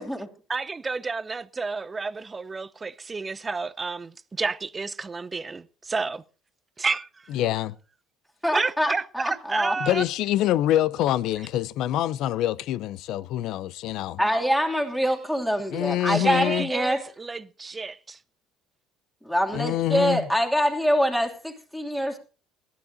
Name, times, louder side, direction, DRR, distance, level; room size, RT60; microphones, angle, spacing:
voice 1, 0.5-6.2 6.8-7.3 8.5-10.0 16.1-18.2, right 4 dB, 20° right, 0.7 m, -31 dB
voice 2, 7.3-7.8 9.8-14.2 15.7-16.7 19.5-20.3, left 13 dB, 70° left, 0.6 m, -25 dB
voice 3, 8.4-9.7 14.2-17.0 19.2-22.2, equal, ahead, 2.8 m, -25 dB
16.0 x 12.0 x 3.9 m
cardioid pair, 105°, 0 cm